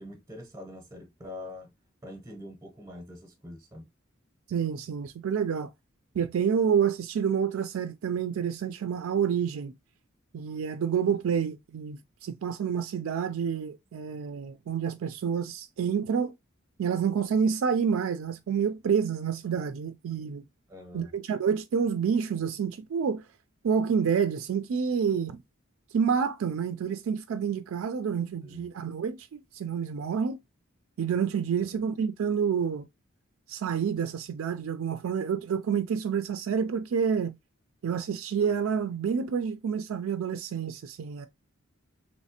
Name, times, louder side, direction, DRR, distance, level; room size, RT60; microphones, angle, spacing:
voice 1, 0.0-1.7 2.0-3.9 20.7-21.1 28.4-28.7 31.6-31.8, left 1 dB, 15° right, 0.7 m, -44 dB
voice 2, 4.5-5.7 6.1-9.7 10.3-16.3 16.8-20.4 20.9-23.2 23.6-25.4 25.9-30.4 31.0-32.9 33.5-37.4 37.8-41.3, right 7 dB, 75° right, 0.4 m, -28 dB
3.1 x 3.1 x 2.8 m
head